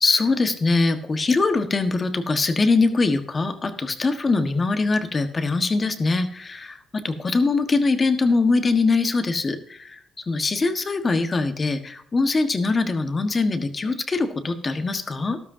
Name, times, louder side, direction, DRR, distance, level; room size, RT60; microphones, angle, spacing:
voice 1, 0.0-15.4, left 3 dB, 30° left, 8 dB, 1.5 m, -22 dB
13.0 x 12.5 x 2.8 m, 0.64 s
cardioid pair, 90°, 0 cm